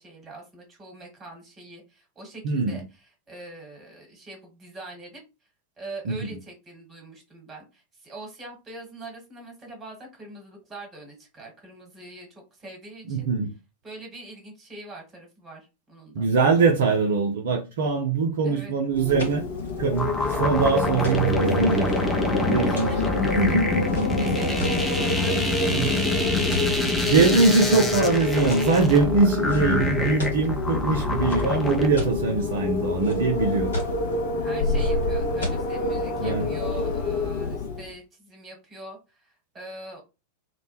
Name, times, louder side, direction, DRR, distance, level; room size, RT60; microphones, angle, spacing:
voice 1, 0.0-5.2 5.8-13.3 13.8-16.3 18.4-18.7 22.6-27.3 34.4-40.0, right 2 dB, 20° right, 1.2 m, -43 dB
voice 2, 2.4-2.8 6.1-6.2 13.1-13.5 16.2-19.4 19.8-21.9 22.3-22.9 23.4-24.3 25.7-25.9 27.1-33.7 36.2-36.5, right 4 dB, 60° right, 0.4 m, -22 dB
Wind, 18.9-37.9, left 3 dB, 55° left, 0.6 m, -27 dB
sound 1, 19.0-25.1 25.7-26.0 26.5-27.2 27.6-28.0 28.5-28.9 29.5-29.6 29.9-30.5 31.3-32.2 32.7-33.4 33.7-34.1 34.8-34.9 35.4-35.6, left 1 dB, 70° left, 1.0 m, -35 dB
sound 2, 20.0-31.9, left 1 dB, 10° left, 0.5 m, -27 dB
2.1 x 2.1 x 2.9 m
figure-of-eight pair, 90°, 0 cm